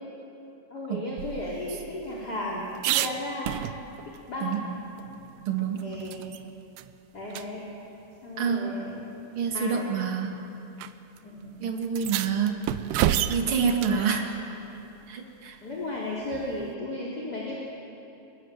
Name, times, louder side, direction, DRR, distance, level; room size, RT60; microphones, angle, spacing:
voice 1, 0.7-3.7 4.0-4.7 5.8-6.2 7.1-7.6 8.2-9.0 9.5-9.8 11.2-11.7 13.8-14.0 15.6-17.6, left 1 dB, 25° left, -4 dB, 3.2 m, -34 dB
sound 1, 1.2-4.2 4.5-4.6 5.0-6.4 6.8-6.9 7.3-7.5 8.5-8.6 9.5-9.8 10.8-10.9 11.2-11.3 11.8-14.0 16.3-16.7, right 12 dB, 80° right, 2.4 m, -31 dB
voice 2, 5.5-5.9 8.4-8.7 9.3-10.4 11.6-12.6 13.3-14.3 15.1-15.6, right 6 dB, 40° right, 2 dB, 2.0 m, -27 dB
29.5 x 23.5 x 7.6 m, 2.9 s
omnidirectional pair, 5.6 m